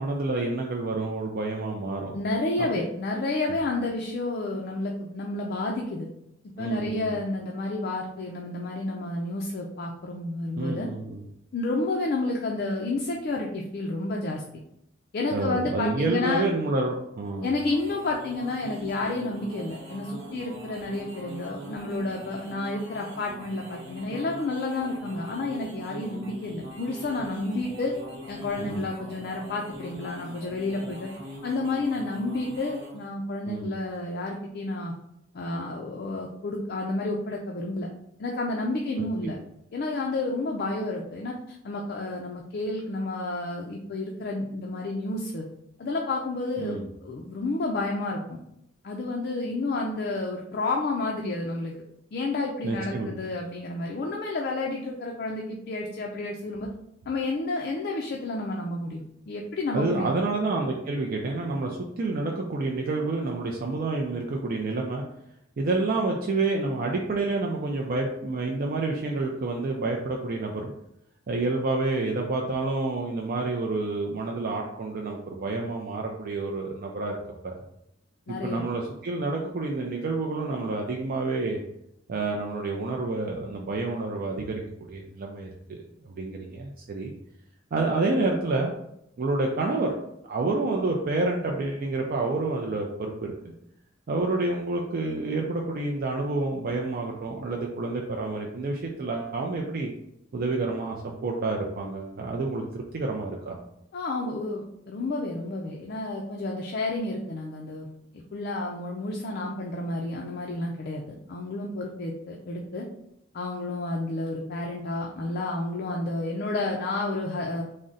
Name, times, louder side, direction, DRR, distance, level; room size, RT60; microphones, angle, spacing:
voice 1, 0.0-2.2 6.6-7.1 10.6-11.2 15.3-17.5 28.6-28.8 33.5-33.7 39.0-39.4 46.6-46.8 52.6-53.1 59.7-65.0 65.6-70.7 71.3-77.2 77.4-77.6 78.4-81.6 82.1-84.6 84.9-87.1 87.7-88.7 89.2-89.9 90.3-93.5 94.1-99.9 100.3-101.0 101.2-103.6, right 3 dB, 50° right, 0 dB, 0.4 m, -28 dB
voice 2, 2.1-6.1 6.6-10.9 11.5-14.4 15.1-16.4 17.4-27.9 28.3-31.1 31.4-34.9 35.3-37.9 38.2-39.4 39.7-45.5 45.8-48.4 48.8-51.8 52.1-56.7 57.1-60.2 78.3-78.7 103.9-107.9 108.1-112.9 113.3-117.6, left 2 dB, 55° left, 0 dB, 0.4 m, -30 dB
sound 1, 17.2-33.1, right 1 dB, 75° right, 1.0 m, -42 dB
3.6 x 2.1 x 3.9 m, 0.80 s
head